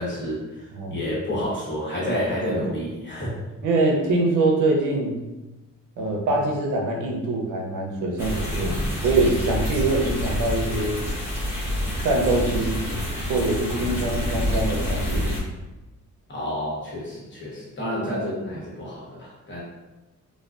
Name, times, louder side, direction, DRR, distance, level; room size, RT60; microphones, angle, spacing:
voice 1, 0.0-3.4 16.3-19.6, equal, 40° left, -6 dB, 1.1 m, -29 dB
voice 2, 3.6-5.2 6.0-8.7 9.0-11.0 12.0-12.8 13.3-15.3, right 2 dB, 80° right, 1 dB, 0.6 m, -23 dB
sound 1, 8.2-15.4, left 1 dB, 10° right, 0.9 m, -27 dB
2.3 x 2.2 x 2.3 m, 1.1 s
cardioid pair, 100°, 31 cm